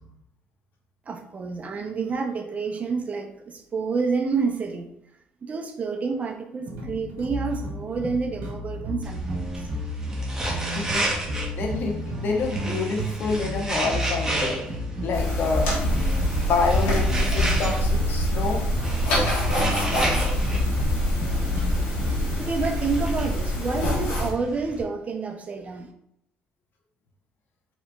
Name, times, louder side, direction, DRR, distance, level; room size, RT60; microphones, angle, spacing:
voice 1, 1.1-4.9 5.4-9.6 22.4-25.9, right 4 dB, 40° right, 4 dB, 0.6 m, -29 dB
sound 1, 6.7-22.3, equal, 70° right, 1.2 m, -32 dB
sound 2, 9.0-24.8, right 1 dB, 15° right, 1.0 m, -33 dB
voice 2, 11.6-14.6 15.0-15.9 16.4-18.6, left 4 dB, 60° left, 0 dB, 0.9 m, -27 dB
sound 3, 15.1-24.3, left 1 dB, 85° left, 1.2 m, -25 dB
4.0 x 3.0 x 2.3 m, 0.76 s
supercardioid pair, 75°, 4 cm